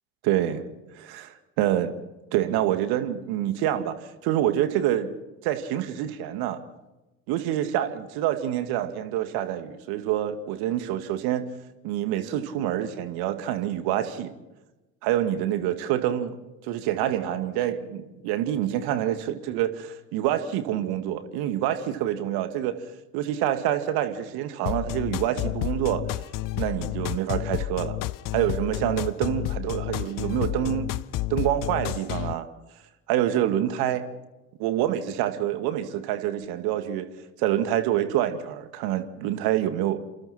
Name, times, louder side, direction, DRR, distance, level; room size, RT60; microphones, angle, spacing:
voice 1, 0.2-0.7 0.9-1.9 2.3-5.1 5.4-6.6 7.3-11.4 11.8-14.3 15.0-16.3 16.6-22.8 23.1-26.0 26.5-28.0 28.3-30.9 31.3-32.5 33.1-34.1 34.6-37.1 37.4-40.0, right 12 dB, 65° right, 2.3 m, -26 dB
sound 1, 24.7-32.3, left 16 dB, 50° left, 0.8 m, -30 dB
29.5 x 27.5 x 4.4 m
figure-of-eight pair, 55°, 41 cm